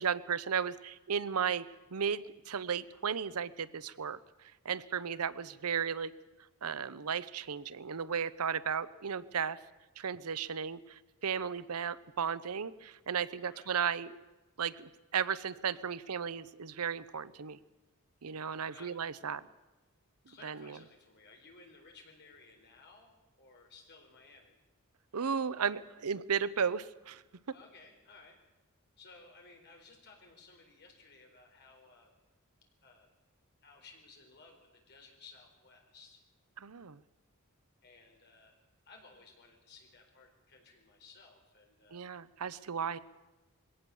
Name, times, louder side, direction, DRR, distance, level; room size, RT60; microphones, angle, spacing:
voice 1, 0.0-1.6 1.9-4.2 4.6-6.1 6.6-9.6 10.0-14.2 14.6-17.6 18.2-19.4 20.4-20.8 25.1-27.2 36.6-37.0 41.9-43.0, right 7 dB, 85° right, 16 dB, 0.7 m, -35 dB
voice 2, 13.5-13.8 18.7-18.9 20.3-23.1 23.4-24.6 27.5-28.4 29.0-32.1 32.8-33.1 33.6-36.2 37.8-38.6 38.9-42.0, left 4 dB, 50° left, 2 dB, 4.4 m, -57 dB
21.5 x 17.5 x 7.0 m, 1.1 s
head